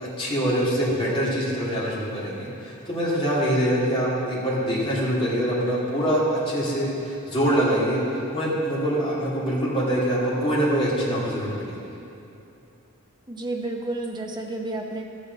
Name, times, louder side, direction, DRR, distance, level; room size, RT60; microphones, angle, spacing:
voice 1, 0.0-11.8, equal, 25° left, -8 dB, 2.7 m, -24 dB
voice 2, 13.3-15.1, right 2 dB, 20° right, 1 dB, 0.9 m, -31 dB
13.0 x 8.3 x 4.0 m, 2.8 s
head